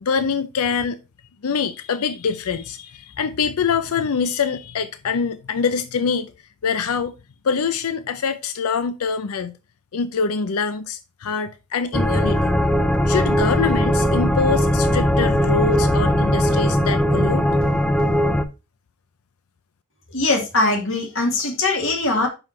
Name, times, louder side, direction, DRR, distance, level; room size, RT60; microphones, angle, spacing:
voice 1, 0.0-1.0 1.4-6.3 6.6-7.1 7.4-9.6 9.9-12.6 13.1-17.5, left 5 dB, 75° left, 0.5 m, -24 dB
sound 1, 11.9-18.4, equal, 5° left, 0.5 m, -19 dB
voice 2, 20.1-22.3, left 2 dB, 60° left, 1.9 m, -21 dB
5.8 x 5.5 x 4.3 m
head